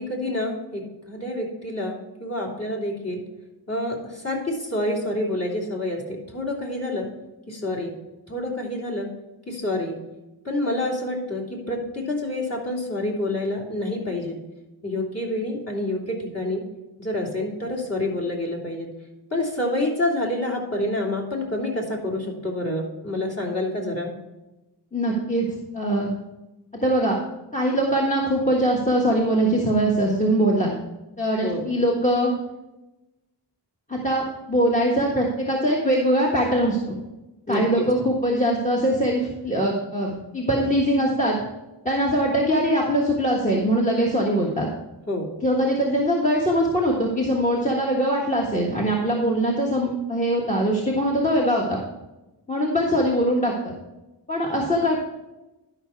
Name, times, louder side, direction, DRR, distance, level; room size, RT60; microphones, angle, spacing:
voice 1, 0.0-3.2 3.7-7.1 7.5-7.9 8.3-9.1 9.5-9.9 10.4-14.4 14.8-16.6 17.0-18.9 19.3-24.1 31.4-31.6 37.5-37.9 45.1-45.3, left 1 dB, 35° left, -2 dB, 3.3 m, -28 dB
voice 2, 24.9-25.5 25.7-26.1 26.8-27.2 27.5-30.7 31.2-32.3 33.9-37.0 37.5-41.4 41.8-44.7 45.4-51.8 52.5-53.7 54.3-55.0, equal, 15° left, -2 dB, 1.5 m, -22 dB
11.5 x 5.8 x 4.6 m, 1.0 s
wide cardioid pair, 75°, 42 cm